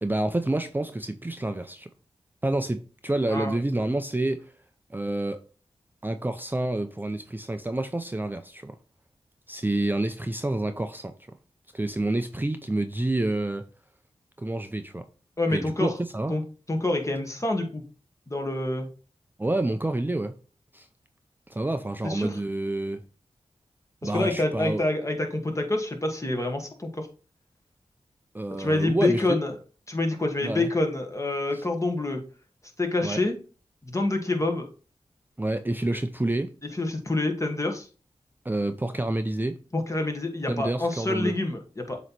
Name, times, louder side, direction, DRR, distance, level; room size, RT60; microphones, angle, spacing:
voice 1, 0.0-1.9 2.4-4.5 4.9-5.4 6.0-8.8 9.5-11.1 11.7-13.6 14.4-15.1 15.5-16.4 19.4-20.3 20.7-20.9 21.5-23.0 24.0-24.9 28.3-29.2 30.4-30.7 31.5-31.6 33.0-33.2 35.4-36.5 38.4-39.6 40.5-41.4, right 2 dB, 15° right, 0.5 m, -28 dB
voice 2, 3.3-3.6 15.4-15.9 16.3-16.4 16.7-17.8 18.3-18.9 22.0-22.4 24.0-27.1 28.6-29.5 29.9-32.2 32.8-33.4 33.8-34.7 36.8-37.9 39.7-42.0, left 2 dB, 25° left, 1.5 m, -27 dB
7.6 x 3.0 x 4.1 m
cardioid pair, 50°, 11 cm